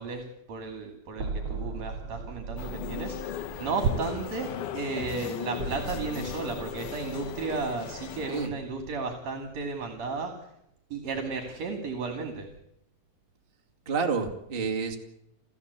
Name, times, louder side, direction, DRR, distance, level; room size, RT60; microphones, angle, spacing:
voice 1, 0.0-3.3 3.6-4.5 4.7-10.3 10.9-12.5, right 4 dB, 55° right, 6 dB, 3.4 m, -33 dB
sound 1, 1.1-5.2 5.5-8.9, right 3 dB, 35° right, 6.6 m, -40 dB
sound 2, 2.6-8.5, left 11 dB, 70° left, 2.4 m, -38 dB
voice 2, 13.9-15.0, right 5 dB, 20° right, 2 dB, 1.8 m, -29 dB
29.5 x 14.5 x 8.3 m, 0.80 s
omnidirectional pair, 3.9 m